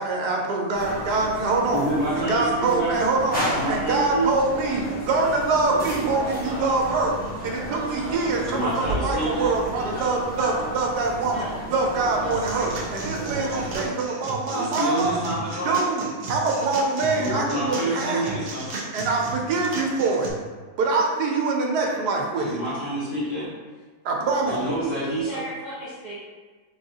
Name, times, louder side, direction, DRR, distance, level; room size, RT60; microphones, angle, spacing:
voice 1, 0.0-1.9 2.2-7.2 7.4-15.2 15.6-18.5 18.9-20.3 20.8-22.6 24.0-24.8, right 3 dB, 90° right, 0 dB, 1.2 m, -24 dB
sound 1, 0.7-13.9, equal, 5° left, 0.9 m, -33 dB
voice 2, 1.7-3.0 3.4-4.2 8.4-9.5 14.5-15.7 17.1-18.7 22.4-23.5 24.4-25.3, right 1 dB, 35° left, -14 dB, 1.6 m, -28 dB
Car / Engine, 4.3-11.7, right 2 dB, 85° left, 1.8 m, -41 dB
voice 3, 12.2-13.8 14.2-14.3 15.5-15.6 25.1-26.2, right 1 dB, 40° right, -10 dB, 1.0 m, -40 dB
sound 2, 12.3-20.3, right 3 dB, 60° right, 0.6 m, -35 dB
4.0 x 3.5 x 2.7 m, 1.4 s
omnidirectional pair, 1.7 m